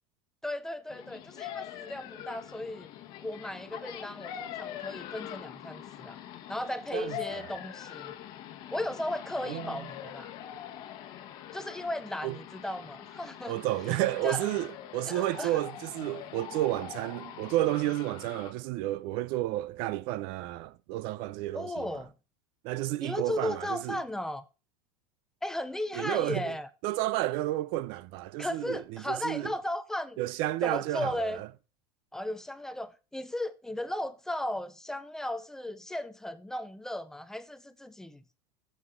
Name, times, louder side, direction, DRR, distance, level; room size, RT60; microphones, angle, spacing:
voice 1, 0.4-2.9 3.2-6.2 6.5-8.1 8.7-10.3 11.5-13.6 14.2-14.5 15.1-15.6 21.5-22.1 23.0-24.4 25.4-26.7 28.4-30.2 30.6-31.4 32.1-38.2, left 1 dB, 5° left, 0.4 m, -36 dB
sound 1, 0.9-18.5, left 11 dB, 45° left, 1.1 m, -43 dB
voice 2, 9.4-9.8 12.2-12.4 13.5-22.0 22.6-24.0 25.9-26.5 26.8-29.5 30.2-31.5, right 16 dB, 55° right, 0.5 m, -31 dB
9.8 x 7.3 x 3.7 m
supercardioid pair, 150°, 11 cm